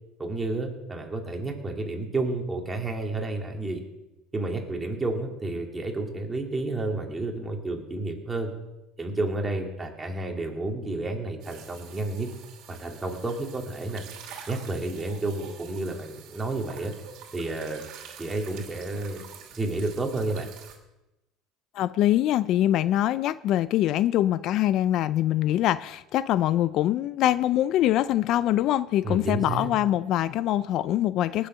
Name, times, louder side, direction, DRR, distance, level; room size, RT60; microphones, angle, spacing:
voice 1, 0.2-3.8 4.3-8.5 9.0-12.3 12.7-14.0 14.5-16.9 17.3-17.9 18.2-19.2 19.5-20.5 29.0-29.7, right 2 dB, 15° right, 1 dB, 2.6 m, -31 dB
sound 1, 11.4-20.8, right 8 dB, 65° right, 2.6 m, -47 dB
voice 2, 21.7-31.5, left 13 dB, 55° left, 16 dB, 0.4 m, -24 dB
19.0 x 7.0 x 5.6 m, 0.98 s
supercardioid pair, 110°, 0 cm